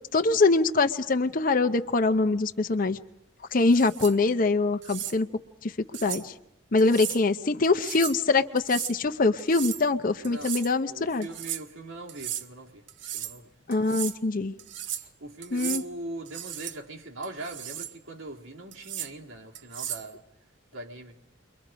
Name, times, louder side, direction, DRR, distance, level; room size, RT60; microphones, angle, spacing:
voice 1, 0.1-3.0 3.5-5.3 5.6-5.7 6.0-6.3 6.7-11.3 13.7-14.5 15.5-15.8, left 3 dB, 45° left, 0.7 m, -24 dB
sound 1, 3.6-4.2 4.8-5.2 5.9-6.2 6.8-7.2 7.6-8.2 8.6-9.0 9.4-9.9 10.2-10.7 11.2-11.6 12.1-12.5 12.9-13.4 13.7-14.2 14.6-15.1 15.4-15.9 16.3-16.8 17.2-17.9 18.7-19.1 19.6-20.1, right 11 dB, 60° right, 0.8 m, -36 dB
voice 2, 10.3-10.6 10.8-12.8 13.1-13.5 15.2-20.2 20.7-21.2, right 2 dB, 80° right, 2.3 m, -41 dB
29.5 x 23.0 x 5.0 m
head